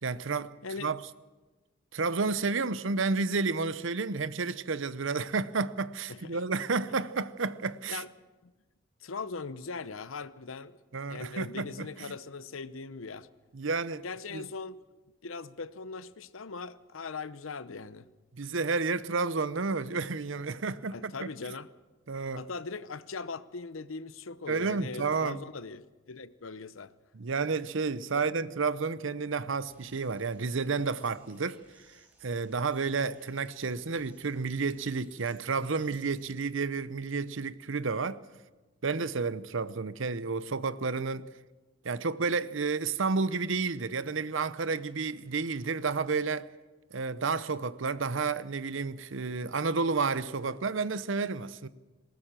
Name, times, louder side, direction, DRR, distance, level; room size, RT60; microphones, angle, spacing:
voice 1, 0.0-0.5 0.8-1.0 1.9-8.0 10.9-12.1 13.5-14.0 14.3-14.4 18.3-21.3 22.1-22.4 24.5-25.4 27.1-31.6 32.2-38.2 38.8-41.3 41.8-46.5 46.9-51.7, right 4 dB, 70° right, 0.8 m, -31 dB
voice 2, 0.6-0.9 6.1-6.4 7.9-8.1 8.4-8.5 9.0-10.8 11.1-13.3 14.0-14.8 15.2-18.1 20.9-21.7 22.3-26.9, left 4 dB, 80° left, 0.8 m, -40 dB
sound 1, 29.7-36.3, equal, 10° right, 4.8 m, -64 dB
20.0 x 18.0 x 7.6 m
head